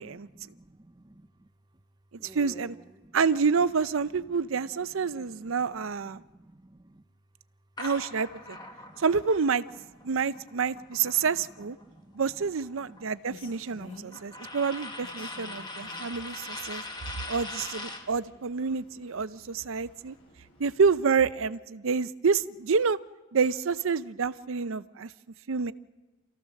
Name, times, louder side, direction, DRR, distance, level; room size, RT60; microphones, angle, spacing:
voice 1, 0.0-1.5 2.2-3.2 4.3-4.7 5.0-7.0 8.5-9.0 10.1-10.5 10.7-11.3 11.8-12.4 12.8-13.2, right 2 dB, 20° right, 11 dB, 0.7 m, -54 dB
voice 2, 2.3-2.8 3.1-6.2 7.8-8.6 9.0-9.6 10.0-11.8 12.1-16.8 17.3-20.1 20.6-23.0 23.3-25.1 25.5-25.7, right 5 dB, 65° right, 15 dB, 0.6 m, -28 dB
sound 1, 7.8-11.8 12.1-18.1, left 2 dB, 20° left, 1.6 m, -42 dB
Rain, 13.0-21.2, left 2 dB, 75° left, 6.2 m, -53 dB
28.5 x 14.5 x 6.5 m, 1.2 s
head